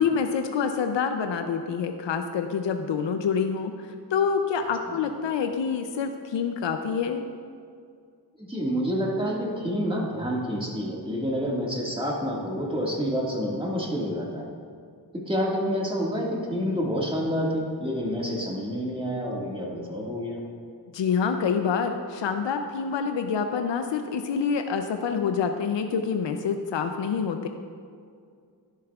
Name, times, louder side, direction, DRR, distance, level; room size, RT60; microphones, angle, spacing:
voice 1, 0.0-7.2 20.9-27.5, left 6 dB, 85° left, 6 dB, 0.6 m, -27 dB
voice 2, 8.4-14.5 15.1-20.4, equal, 10° right, -3 dB, 1.8 m, -28 dB
12.0 x 10.5 x 2.4 m, 2.2 s
wide cardioid pair, 75°, 43 cm